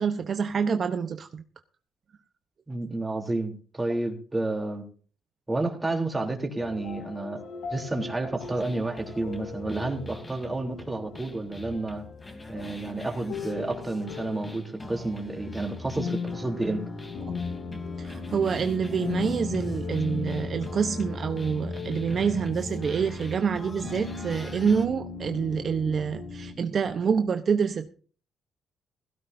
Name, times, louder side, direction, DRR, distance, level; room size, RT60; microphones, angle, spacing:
voice 1, 0.0-1.4 17.3-17.4 17.7-27.9, right 6 dB, 50° right, 8 dB, 1.0 m, -27 dB
voice 2, 2.7-4.8 5.5-7.4 7.7-12.1 12.5-16.8, right 2 dB, 15° right, 3 dB, 3.6 m, -30 dB
sound 1, 6.6-26.5, left 4 dB, 80° left, 2.7 m, -37 dB
sound 2, 8.4-24.9, left 2 dB, 20° left, 3.4 m, -43 dB
16.5 x 16.5 x 2.8 m, 0.41 s
cardioid pair, 90°, 0 cm